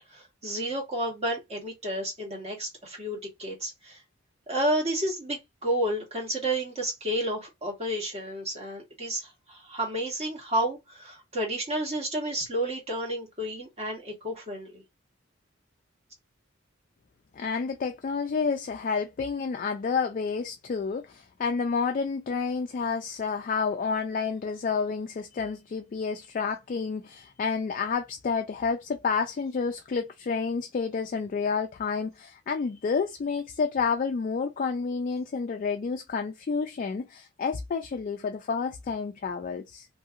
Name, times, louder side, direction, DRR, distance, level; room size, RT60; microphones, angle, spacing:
voice 1, 0.1-4.0 4.5-14.8, right 1 dB, 35° right, 1.4 m, -31 dB
voice 2, 17.3-39.9, left 5 dB, 40° left, 0.3 m, -30 dB
2.8 x 2.8 x 2.4 m
head